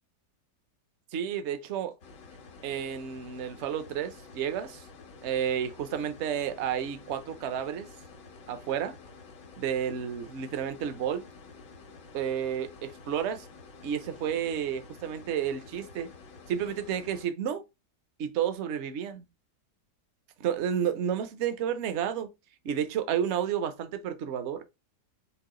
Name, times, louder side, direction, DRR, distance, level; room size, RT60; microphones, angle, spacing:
voice 1, 1.1-1.9 2.6-4.9 5.2-7.9 8.5-9.0 9.6-11.2 12.1-13.5 13.8-16.1 16.5-17.6 18.2-19.3 20.4-22.3 22.6-24.6, right 9 dB, 60° right, 0.8 m, -31 dB
sound 1, 2.0-17.3, left 4 dB, 85° left, 1.7 m, -50 dB
4.8 x 3.0 x 3.7 m
omnidirectional pair, 1.9 m